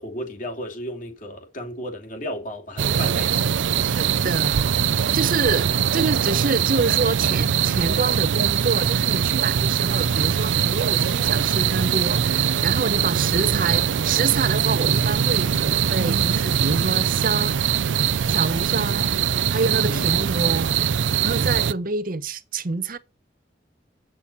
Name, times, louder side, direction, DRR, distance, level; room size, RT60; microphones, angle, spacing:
voice 1, 0.0-3.5 19.9-20.0, equal, 45° left, 2.7 m, -34 dB
sound 1, 2.8-21.7, right 8 dB, 80° right, 0.4 m, -22 dB
voice 2, 3.8-4.6 4.9-17.5 18.3-19.1 19.5-20.8 21.2-23.0, right 4 dB, 45° right, 0.8 m, -27 dB
8.6 x 6.1 x 5.4 m
head